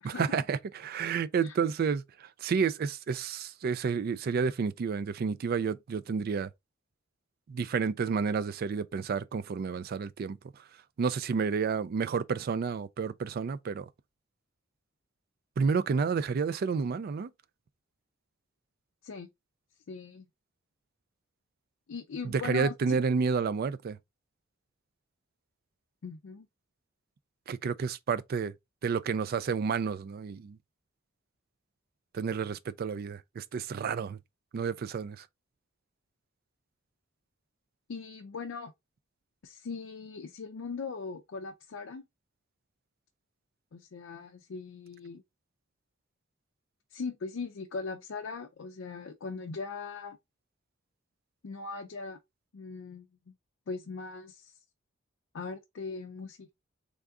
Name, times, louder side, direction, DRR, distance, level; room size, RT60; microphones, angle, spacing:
voice 1, 0.0-6.5 7.5-10.4 11.0-13.9 15.6-17.3 22.2-24.0 27.5-28.5 28.8-30.6 32.1-34.2 34.5-35.2, right 5 dB, 45° right, 0.3 m, -30 dB
voice 2, 19.9-20.3 21.9-23.0 26.0-26.5 37.9-38.7 39.4-42.0 43.7-45.2 46.9-50.2 51.4-52.2 52.5-53.3 53.7-54.5 55.3-56.5, left 4 dB, 70° left, 0.4 m, -40 dB
3.6 x 2.3 x 3.5 m
head